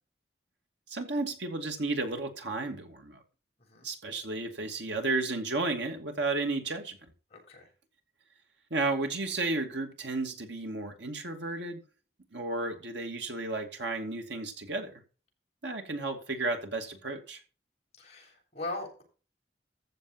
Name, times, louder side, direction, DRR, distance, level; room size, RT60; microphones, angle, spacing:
voice 1, 0.9-3.2 3.8-7.0 8.7-11.8 12.3-15.0 15.6-17.4, right 3 dB, 75° right, 2.6 m, -33 dB
voice 2, 7.3-7.7 17.9-19.0, left 2 dB, 35° left, 7.1 m, -40 dB
14.5 x 6.8 x 4.4 m
head